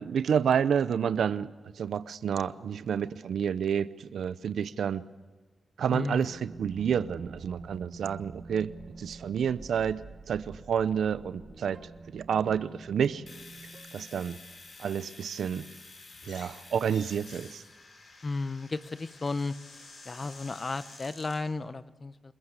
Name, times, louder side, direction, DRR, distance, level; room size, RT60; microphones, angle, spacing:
voice 1, 0.0-5.0 5.8-11.8 12.1-13.2 13.9-14.4 14.8-15.7 16.3-17.6, right 7 dB, 90° right, 15 dB, 0.7 m, -29 dB
voice 2, 5.9-6.3 18.2-19.5 20.1-22.3, left 3 dB, 40° left, 14 dB, 0.9 m, -34 dB
sound 1, 6.2-14.7, right 4 dB, 50° right, 1.2 m, -48 dB
Domestic sounds home sounds, 13.3-21.1, left 3 dB, 55° left, 6.1 m, -51 dB
sound 2, 16.1-16.6 16.8-21.4, left 3 dB, 80° left, 7.2 m, -52 dB
27.5 x 15.0 x 8.3 m, 1.4 s
cardioid pair, 75°, 0 cm